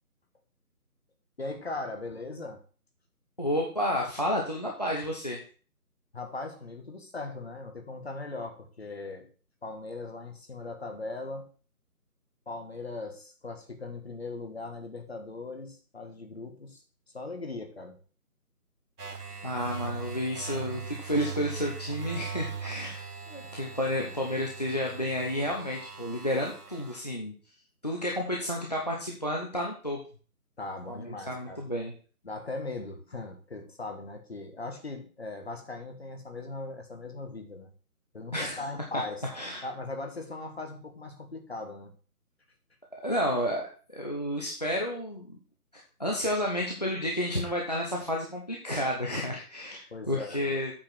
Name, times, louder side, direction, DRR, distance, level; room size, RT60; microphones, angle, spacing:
voice 1, 1.4-2.6 6.1-9.3 9.6-11.5 12.5-16.8 17.1-18.0 30.6-31.7 32.2-37.7 38.1-39.2 39.6-41.9 49.9-50.6, left 3 dB, 40° left, 5 dB, 1.5 m, -39 dB
voice 2, 3.4-5.4 19.4-27.3 27.8-30.0 30.9-31.9 38.3-38.6 39.3-39.7 43.0-43.7 43.9-45.4 45.7-50.7, equal, 25° left, -1 dB, 0.9 m, -31 dB
sound 1, 19.0-27.0, right 5 dB, 80° right, 1.5 m, -40 dB
8.5 x 5.0 x 6.0 m, 0.39 s
figure-of-eight pair, 170°, 46 cm